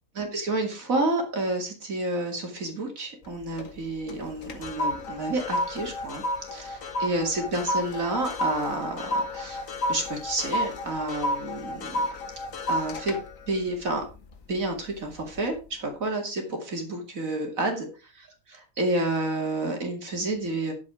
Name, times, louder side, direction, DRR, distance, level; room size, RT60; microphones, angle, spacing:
voice 1, 0.2-6.2 6.5-12.0 12.7-13.2 13.5-14.0 14.5-17.9 18.5-20.7, right 2 dB, 70° right, 3 dB, 2.8 m, -30 dB
sound 1, 3.2-3.8 4.1-14.6 15.1-15.4, left 1 dB, 65° left, 1.9 m, -31 dB
10.5 x 7.4 x 4.9 m, 0.31 s
omnidirectional pair, 1.5 m